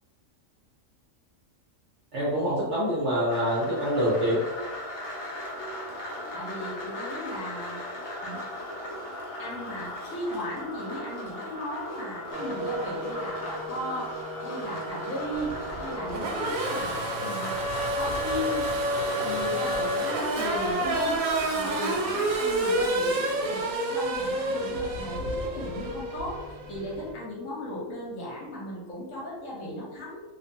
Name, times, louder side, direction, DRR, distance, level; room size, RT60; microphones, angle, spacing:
voice 1, 2.1-4.4, equal, 60° right, -7 dB, 1.0 m, -25 dB
sound 1, 3.3-22.9, left 1 dB, 55° left, 0.8 m, -38 dB
voice 2, 6.3-7.8 8.2-8.4 9.4-17.6 17.9-18.7 19.0-21.2 21.5-30.2, left 1 dB, 75° left, -4 dB, 1.1 m, -36 dB
Race car auto racing / Accelerating revving vroom, 12.3-27.1, right 1 dB, 85° right, 1.0 m, -30 dB
2.7 x 2.2 x 2.6 m, 1.1 s
omnidirectional pair, 1.4 m